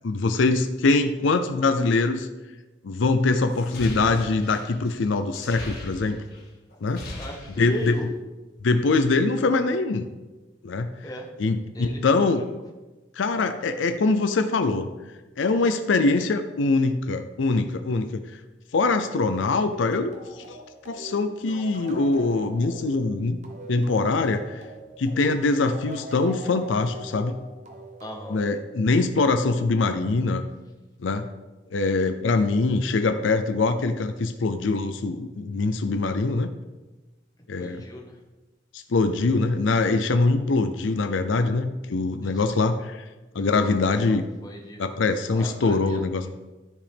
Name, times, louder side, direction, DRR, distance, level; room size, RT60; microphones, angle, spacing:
voice 1, 0.0-2.3 2.8-6.2 6.8-7.0 7.6-8.0 8.6-10.1 10.6-10.9 11.4-12.4 13.2-14.9 15.4-18.2 18.7-20.6 20.9-23.4 23.7-24.6 25.0-27.4 28.3-30.4 31.0-31.3 31.7-36.5 37.5-37.8 38.7-43.0 43.3-44.2 44.8-46.3, left 3 dB, 80° left, 9 dB, 0.5 m, -23 dB
sound 1, 3.5-6.4 6.7-8.1, left 1 dB, 50° left, 1.8 m, -39 dB
voice 2, 7.2-8.1 11.0-11.3 11.7-12.5 28.0-28.4 37.6-38.2 42.2-42.4 43.8-44.9 45.3-46.0, equal, 20° left, 0 dB, 1.2 m, -37 dB
sound 2, 19.9-29.2, right 1 dB, 35° right, 0.9 m, -42 dB
13.5 x 4.9 x 3.5 m, 1.2 s
head